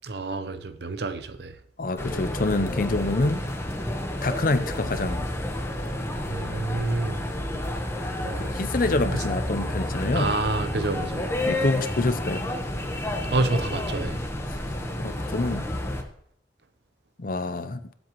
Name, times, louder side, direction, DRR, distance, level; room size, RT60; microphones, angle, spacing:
voice 1, 0.0-1.5 6.3-7.2 8.2-8.5 10.1-11.2 13.3-14.2, right 2 dB, 65° right, 0.8 m, -28 dB
voice 2, 1.8-3.4 4.2-5.2 8.3-10.3 11.5-12.4 15.0-15.7 17.2-17.8, left 2 dB, 50° left, 0.7 m, -26 dB
sound 1, 2.0-16.0, left 1 dB, 15° left, 1.1 m, -30 dB
22.5 x 7.8 x 3.1 m
head